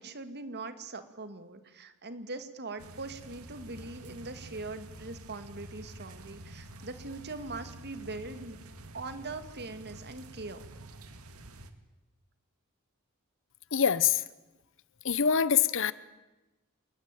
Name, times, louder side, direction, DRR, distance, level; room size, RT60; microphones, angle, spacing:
voice 1, 0.0-8.6 8.9-10.6, right 3 dB, 50° right, 2.3 m, -41 dB
sound 1, 2.8-11.7, right 1 dB, 80° right, 2.2 m, -48 dB
voice 2, 13.7-14.2 15.0-15.9, left 7 dB, 60° left, 0.9 m, -24 dB
27.5 x 20.5 x 9.2 m
head